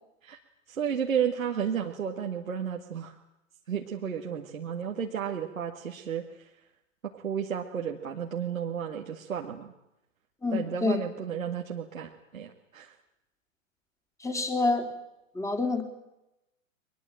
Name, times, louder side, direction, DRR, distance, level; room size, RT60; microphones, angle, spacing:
voice 1, 0.7-3.1 3.7-6.5 7.0-9.7 10.5-12.9, right 8 dB, 80° right, 1 dB, 2.1 m, -32 dB
voice 2, 10.4-11.0 14.2-14.9 15.3-15.8, left 3 dB, 5° left, 6 dB, 3.3 m, -27 dB
22.5 x 20.5 x 8.9 m, 0.89 s
figure-of-eight pair, 105°, 40 cm